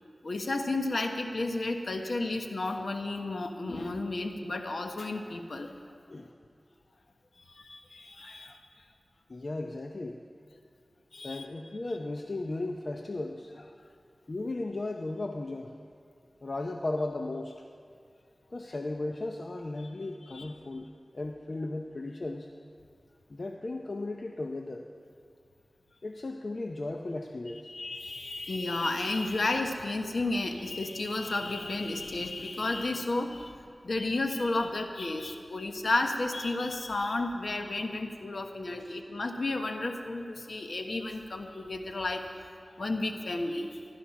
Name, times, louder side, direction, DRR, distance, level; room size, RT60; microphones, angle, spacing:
voice 1, 0.2-5.8 7.4-8.6 11.1-11.5 19.8-19.9 20.2-20.5 27.7-33.5 33.8-42.2 42.8-43.9, left 2 dB, 75° left, 5 dB, 1.2 m, -32 dB
voice 2, 9.3-10.2 11.2-13.5 14.3-15.8 16.4-17.5 18.5-20.9 21.1-22.5 23.3-24.9 26.0-27.7, left 2 dB, 60° left, 3 dB, 0.7 m, -35 dB
16.0 x 12.0 x 5.9 m, 2.3 s
wide cardioid pair, 50°, 0 cm